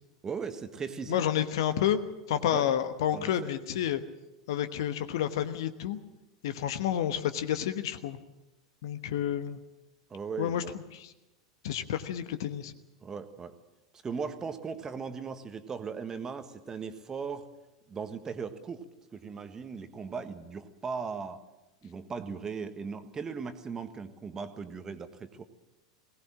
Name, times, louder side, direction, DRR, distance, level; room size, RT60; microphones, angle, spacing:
voice 1, 0.2-1.2 2.4-2.7 3.1-3.5 10.1-10.7 13.0-13.5 14.0-17.4 17.9-18.8 19.1-21.4 21.8-25.4, right 5 dB, 20° right, 9 dB, 1.5 m, -38 dB
voice 2, 1.1-2.0 2.3-4.0 4.5-6.0 6.4-8.2 8.8-9.6 10.4-10.6 10.9-11.1 11.6-12.7, left 10 dB, 55° left, 11 dB, 1.2 m, -30 dB
21.0 x 18.5 x 7.5 m, 0.99 s
figure-of-eight pair, 85°, 3 cm